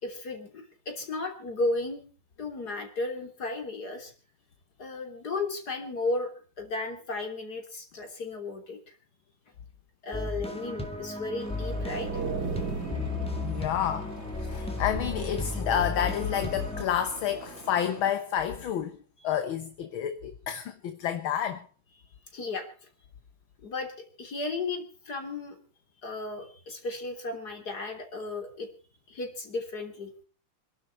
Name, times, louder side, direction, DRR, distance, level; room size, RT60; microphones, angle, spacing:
voice 1, 0.0-2.0 2.4-4.1 4.8-6.3 6.6-8.9 10.0-12.2 22.3-22.7 23.6-23.9 24.2-25.6 26.0-28.7 29.1-30.1, left 2 dB, 45° left, 3.8 m, -34 dB
sound 1, 10.1-16.8, left 2 dB, 5° left, 1.9 m, -35 dB
sound 2, 11.4-18.1, right 3 dB, 30° right, 3.1 m, -47 dB
sound 3, 11.4-14.3, right 5 dB, 50° right, 2.7 m, -36 dB
voice 2, 12.5-21.7, left 9 dB, 70° left, 1.8 m, -30 dB
26.5 x 11.5 x 4.2 m
omnidirectional pair, 2.4 m